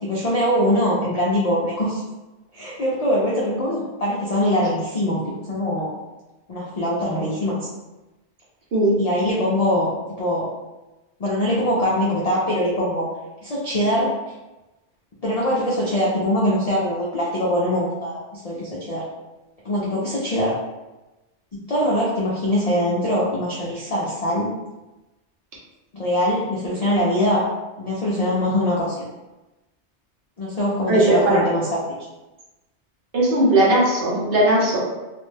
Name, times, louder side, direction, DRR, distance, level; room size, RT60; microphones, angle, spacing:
voice 1, 0.0-2.0 2.5-5.9 6.5-7.7 9.0-9.9 10.2-10.5 11.2-13.1 13.4-14.1 15.2-19.0 19.6-20.5 21.5-24.5 25.9-27.5 27.8-29.1 30.4-31.7, equal, 55° left, -6 dB, 0.4 m, -22 dB
voice 2, 30.9-31.5 33.1-34.8, right 1 dB, 55° right, -5 dB, 0.8 m, -18 dB
2.5 x 2.1 x 3.2 m, 1.1 s
omnidirectional pair, 1.2 m